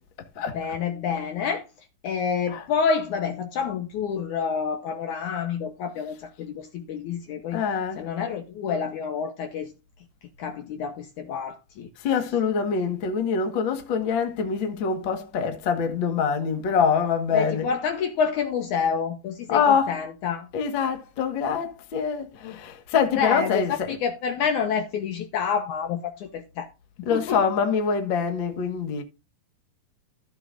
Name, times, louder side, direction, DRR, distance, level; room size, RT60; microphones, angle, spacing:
voice 1, 0.5-1.7 2.0-7.6 8.0-9.7 10.4-11.9 17.3-20.5 22.4-22.6 23.1-26.7 27.1-27.4, left 6 dB, 70° left, 2.0 m, -28 dB
voice 2, 7.5-8.0 12.0-17.7 19.5-20.0 20.5-24.0 27.0-29.0, left 6 dB, 55° left, 1.4 m, -25 dB
14.5 x 7.5 x 2.5 m
omnidirectional pair, 4.4 m